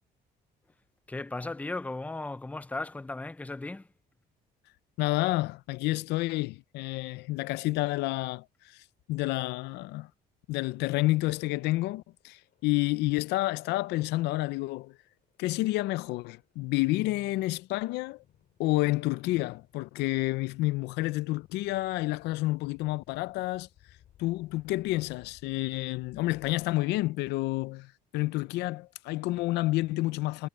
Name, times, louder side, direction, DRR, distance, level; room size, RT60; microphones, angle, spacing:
voice 1, 1.1-3.9, left 2 dB, 10° left, 0.6 m, -36 dB
voice 2, 5.0-8.8 9.1-10.1 10.5-15.0 15.4-18.2 18.6-23.7 24.2-30.5, left 19 dB, 90° left, 0.6 m, -29 dB
sound 1, 12.2-27.3, left 11 dB, 65° left, 4.8 m, -63 dB
cardioid pair, 110°, 17 cm